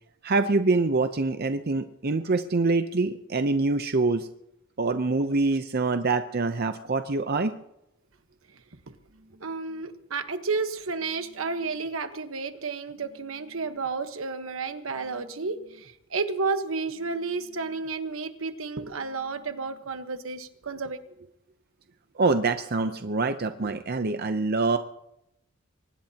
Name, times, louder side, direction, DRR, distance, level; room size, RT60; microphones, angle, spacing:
voice 1, 0.2-4.3 4.8-7.5 22.2-24.8, right 3 dB, 50° right, 8 dB, 0.7 m, -25 dB
voice 2, 8.9-21.0, right 4 dB, 75° right, 8 dB, 1.2 m, -32 dB
23.5 x 19.5 x 2.9 m, 0.82 s
head